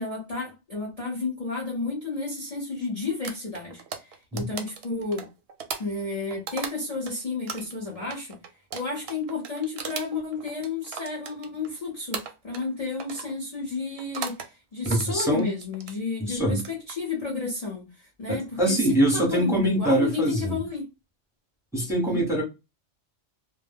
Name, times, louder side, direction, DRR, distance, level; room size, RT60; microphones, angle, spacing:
voice 1, 0.0-5.3 5.8-8.4 8.7-20.8 22.1-22.2, left 4 dB, 40° left, 0.6 m, -32 dB
sound 1, 3.2-7.1 7.5-11.7 12.1-12.7 13.0-13.3 14.0-14.5 14.8-16.0 16.5-16.9, right 6 dB, 65° right, 0.7 m, -37 dB
voice 2, 14.9-15.5 16.3-16.6 18.3-20.6 21.7-22.4, right 1 dB, 5° right, 0.8 m, -23 dB
2.2 x 2.1 x 3.3 m
omnidirectional pair, 1.2 m